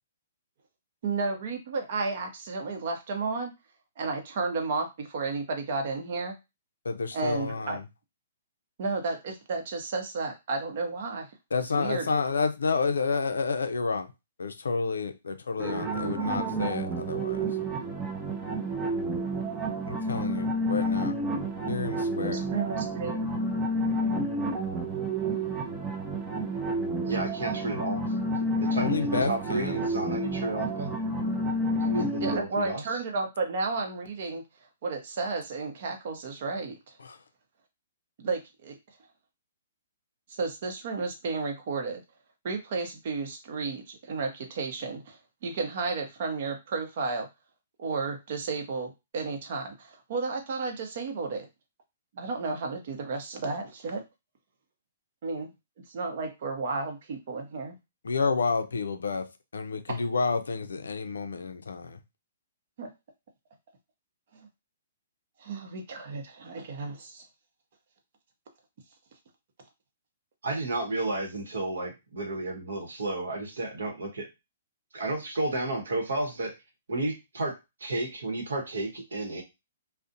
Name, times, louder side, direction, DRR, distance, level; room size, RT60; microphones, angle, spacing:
voice 1, 1.0-3.5 4.0-6.4 7.1-7.8 8.8-11.3 11.7-12.1 19.3-19.6 22.2-23.3 32.2-34.4 34.8-36.8 38.2-38.7 40.3-42.0 42.4-47.3 47.8-51.5 52.1-54.0 55.2-55.5 55.9-57.8 59.9-60.0 62.8-62.9 65.4-67.2, right 3 dB, 55° right, 0.7 m, -32 dB
voice 2, 6.8-7.8 11.5-14.1 14.4-17.6 19.9-21.2 21.7-22.5 28.7-29.8 37.0-37.2 58.0-62.0, left 4 dB, 85° left, 0.4 m, -30 dB
sound 1, 15.6-32.4, right 1 dB, 15° right, 0.5 m, -30 dB
voice 3, 27.1-28.1 28.4-30.9 31.8-33.0 70.4-74.3 74.9-76.5 76.9-79.4, right 2 dB, 80° right, 0.9 m, -32 dB
2.4 x 2.0 x 2.6 m
hypercardioid pair, 135°, 0 cm